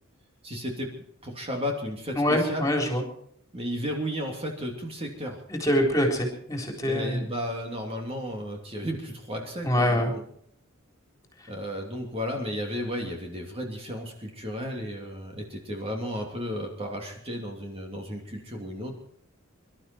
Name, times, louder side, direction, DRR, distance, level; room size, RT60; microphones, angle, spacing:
voice 1, 0.4-0.9 1.2-2.7 3.5-5.4 6.8-10.2 11.5-18.9, equal, 25° right, 2 dB, 2.8 m, -33 dB
voice 2, 2.2-3.0 5.5-7.2 9.6-10.1, equal, 15° left, 2 dB, 3.9 m, -24 dB
24.5 x 12.5 x 4.5 m, 0.64 s
head